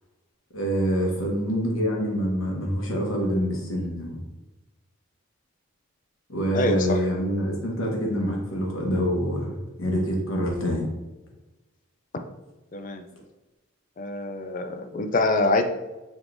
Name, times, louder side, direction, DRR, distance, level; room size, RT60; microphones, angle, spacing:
voice 1, 0.5-4.2 6.3-10.9, equal, 75° left, -1 dB, 1.0 m, -26 dB
voice 2, 6.5-7.0 12.7-13.0 14.0-15.6, left 2 dB, 40° left, 6 dB, 0.3 m, -25 dB
5.1 x 3.0 x 2.6 m, 1.1 s
head